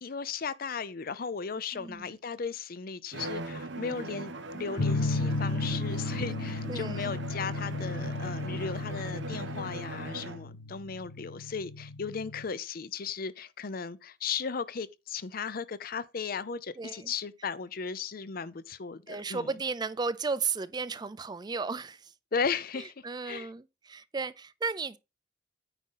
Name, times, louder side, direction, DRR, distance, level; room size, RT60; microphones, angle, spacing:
voice 1, 0.0-19.5 22.3-23.5, left 5 dB, 50° left, 0.6 m, -36 dB
voice 2, 1.7-2.1 6.0-6.3 6.7-7.1 16.8-17.1 19.1-22.1 22.8-25.0, right 4 dB, 20° right, 0.4 m, -34 dB
Bowed string instrument, 3.1-10.5, right 2 dB, 70° right, 1.0 m, -40 dB
sound 1, 4.8-12.4, left 2 dB, 80° left, 0.9 m, -34 dB
9.2 x 3.8 x 5.6 m
head